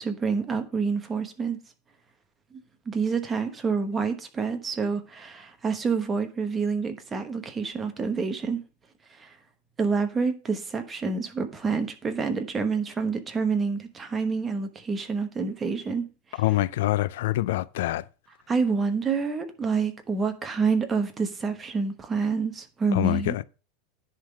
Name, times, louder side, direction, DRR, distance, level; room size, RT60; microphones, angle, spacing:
voice 1, 0.0-1.6 2.9-8.6 9.2-9.3 9.8-16.1 16.3-16.4 18.5-23.4, right 5 dB, 15° right, 1.0 m, -27 dB
voice 2, 16.4-18.1 22.9-23.4, left 15 dB, 70° left, 0.4 m, -25 dB
10.0 x 3.8 x 6.2 m
supercardioid pair, 160°, 0 cm